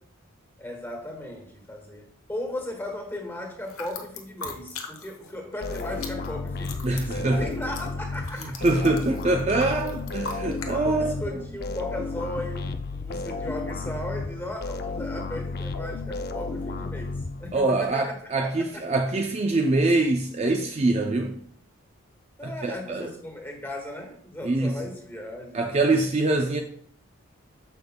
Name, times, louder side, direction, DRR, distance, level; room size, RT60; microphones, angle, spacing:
voice 1, 0.6-8.6 10.7-18.9 22.4-26.1, left 1 dB, 10° left, 1.5 m, -37 dB
sound 1, 3.6-5.3 5.6-10.7, left 4 dB, 70° left, 1.1 m, -40 dB
sound 2, 5.6-17.8, left 3 dB, 45° left, 0.6 m, -33 dB
voice 2, 6.8-7.5 8.6-11.1 17.5-21.3 22.4-23.1 24.4-24.7 25.5-26.6, right 2 dB, 30° right, 0.4 m, -24 dB
13.5 x 5.3 x 2.2 m
head